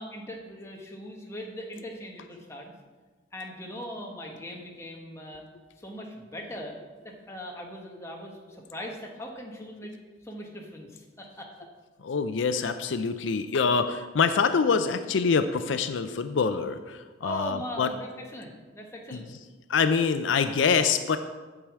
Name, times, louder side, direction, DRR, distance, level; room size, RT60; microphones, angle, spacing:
voice 1, 0.0-2.7 3.3-5.4 5.8-6.8 7.0-8.4 8.7-9.9 10.2-11.5 17.2-19.3, equal, 15° left, 0 dB, 1.2 m, -39 dB
voice 2, 12.0-17.9 19.1-19.2 19.7-21.2, left 5 dB, 80° left, 10 dB, 0.5 m, -25 dB
8.8 x 4.9 x 7.4 m, 1.3 s
head